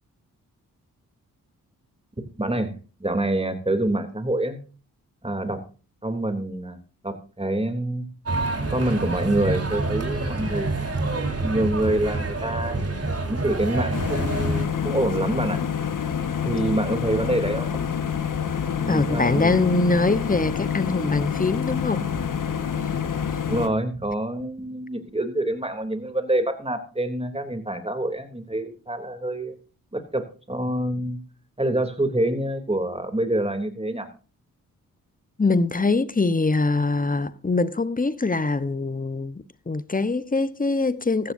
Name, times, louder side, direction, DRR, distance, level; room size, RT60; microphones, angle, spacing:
voice 1, 2.4-2.7 3.0-4.6 5.2-5.6 6.0-6.8 7.0-8.1 8.7-10.8 11.4-12.8 13.3-15.6 16.4-17.7 18.8-19.7 23.5-29.6 29.9-31.2 31.6-34.1, right 1 dB, 15° right, 3.1 m, -26 dB
sound 1, 8.3-14.7, right 2 dB, 40° right, 4.0 m, -27 dB
sound 2, 13.9-23.7, left 7 dB, 55° left, 1.6 m, -27 dB
voice 2, 18.9-22.0 35.4-41.3, left 3 dB, 20° left, 1.1 m, -23 dB
15.0 x 14.0 x 2.7 m
supercardioid pair, 40°, 37 cm